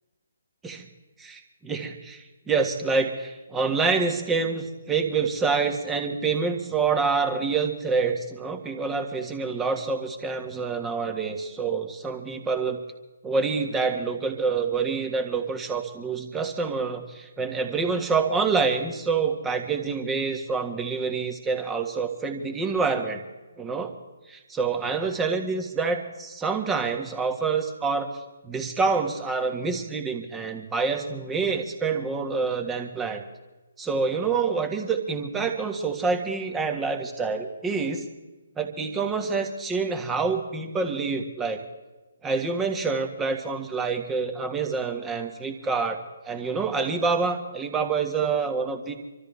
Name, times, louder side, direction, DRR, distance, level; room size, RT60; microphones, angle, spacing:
voice 1, 1.2-12.8 13.2-23.2 23.6-23.9 24.3-28.1 28.4-33.2 33.8-38.0 38.6-41.6 42.2-46.0 46.2-48.9, right 4 dB, 10° right, 4 dB, 1.7 m, -27 dB
26.5 x 13.5 x 3.5 m, 1.1 s
figure-of-eight pair, 140°, 0 cm